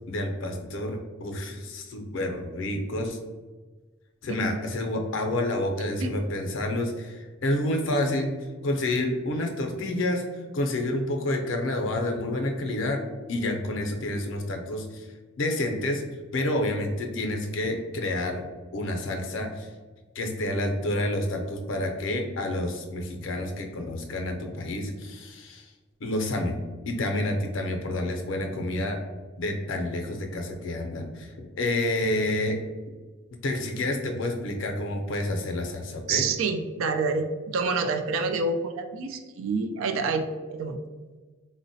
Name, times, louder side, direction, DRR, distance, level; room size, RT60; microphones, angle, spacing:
voice 1, 0.1-3.2 4.2-8.3 8.6-10.2 10.5-13.0 13.3-15.1 15.4-16.0 16.3-18.5 18.7-19.7 20.2-25.7 26.0-29.0 29.4-32.6 33.4-36.2, left 1 dB, 65° left, 3 dB, 0.5 m, -29 dB
voice 2, 36.1-37.2 37.5-40.8, right 4 dB, 75° right, 7 dB, 0.3 m, -27 dB
3.8 x 2.1 x 2.6 m, 1.3 s
head